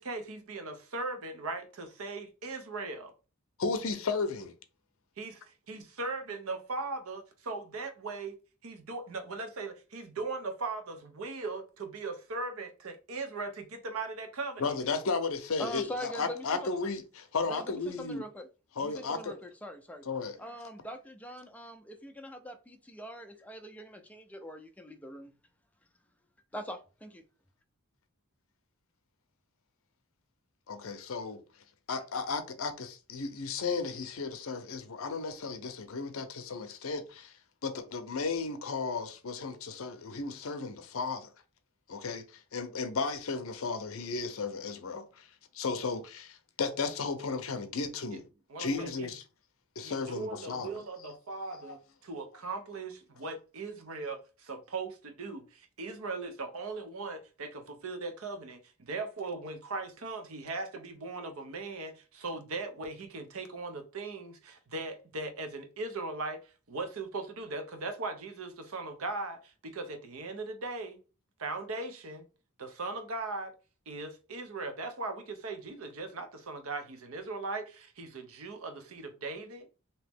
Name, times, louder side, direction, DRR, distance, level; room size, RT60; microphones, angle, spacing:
voice 1, 0.0-3.1 5.2-5.4 5.7-8.4 8.6-14.7 48.1-48.2 48.5-49.1 49.8-71.0 71.4-72.3 72.6-73.5 73.9-79.7, right 3 dB, 70° right, 0.7 m, -39 dB
voice 2, 3.6-4.5 14.6-18.2 18.8-19.4 20.1-20.4 30.7-31.4 31.9-37.3 37.6-41.3 41.9-45.3 45.5-48.2 48.6-49.2 49.8-50.8 51.5-51.8, left 4 dB, 65° left, 0.6 m, -34 dB
voice 3, 15.6-16.7 17.5-18.5 18.8-20.0 20.4-25.3 26.5-27.2, equal, 5° left, 0.4 m, -43 dB
3.0 x 2.8 x 3.4 m
head